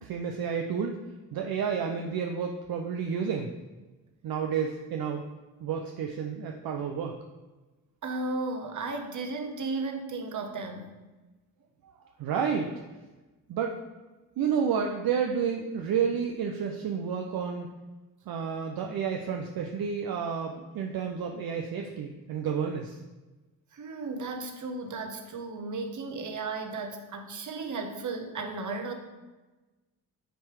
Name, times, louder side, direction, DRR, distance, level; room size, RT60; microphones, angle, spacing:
voice 1, 0.0-0.9 1.3-3.5 4.2-5.2 5.6-7.2 12.2-12.8 13.5-13.7 14.4-17.7 18.3-23.0, right 7 dB, 70° right, 3 dB, 0.7 m, -30 dB
voice 2, 8.0-10.9 11.8-12.1 23.7-28.9, right 3 dB, 50° right, 4 dB, 1.2 m, -35 dB
9.1 x 3.3 x 4.8 m, 1.2 s
cardioid pair, 75°, 37 cm